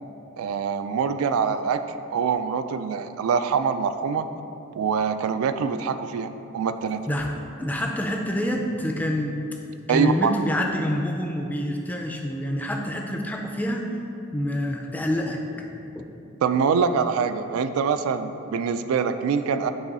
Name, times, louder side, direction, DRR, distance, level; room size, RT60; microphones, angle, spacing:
voice 1, 0.4-1.8 2.1-4.3 4.8-7.0 9.9-10.4 16.4-19.7, right 6 dB, 85° right, 10 dB, 0.3 m, -24 dB
voice 2, 7.6-9.4 9.9-13.8 14.3-15.7 16.0-16.1, left 1 dB, 10° left, 2 dB, 0.3 m, -27 dB
9.0 x 3.0 x 4.1 m, 2.8 s
head